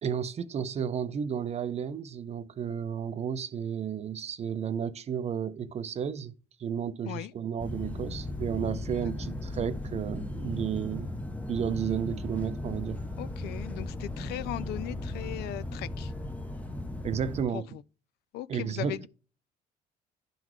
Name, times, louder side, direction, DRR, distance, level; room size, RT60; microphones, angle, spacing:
voice 1, 0.0-6.3 6.6-11.1 11.5-13.0 17.0-17.7 18.5-19.1, right 8 dB, 40° right, 0.6 m, -32 dB
sound 1, 7.6-17.4, left 1 dB, 10° left, 0.7 m, -36 dB
voice 2, 13.2-16.1 17.5-17.8 18.3-19.1, left 14 dB, 75° left, 0.4 m, -38 dB
11.5 x 3.9 x 3.1 m
cardioid pair, 110°, 17 cm